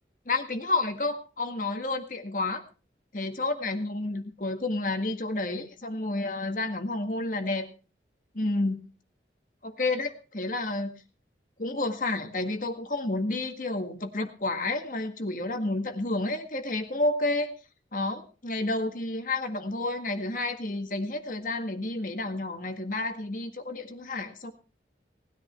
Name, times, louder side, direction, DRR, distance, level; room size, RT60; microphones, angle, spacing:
voice 1, 0.3-2.6 3.1-7.7 8.3-8.8 9.6-10.9 11.6-17.5 17.9-24.5, left 2 dB, 50° left, 6 dB, 1.8 m, -30 dB
19.0 x 10.0 x 4.5 m, 0.35 s
head